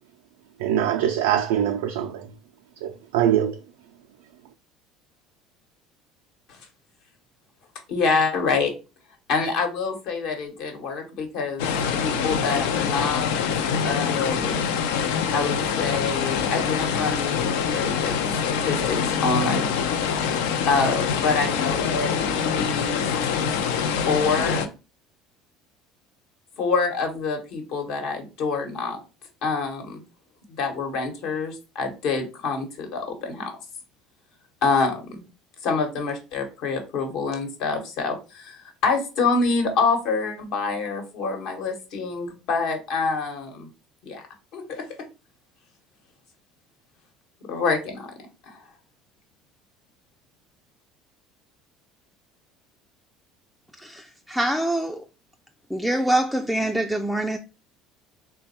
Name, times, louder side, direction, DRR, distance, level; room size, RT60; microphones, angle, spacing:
voice 1, 0.6-2.3 2.8-3.6, right 10 dB, 85° right, 0.3 m, -23 dB
voice 2, 7.9-8.7 9.3-11.7 12.0-13.3 13.8-14.7 15.3-17.4 17.7-18.2 18.5-19.7 20.6-23.0 23.2-23.5 24.0-24.7 26.6-29.0 29.4-30.0 30.6-33.5 34.6-35.2 35.6-43.7 44.0-44.2 44.5-44.8 47.4-48.1 48.5-48.7, left 4 dB, 70° left, 1.1 m, -26 dB
sound 1, 11.6-24.7, left 7 dB, 85° left, 0.4 m, -25 dB
voice 3, 53.8-55.0 55.7-57.4, right 1 dB, ahead, 0.3 m, -25 dB
3.4 x 2.2 x 4.1 m
supercardioid pair, 95°, 0 cm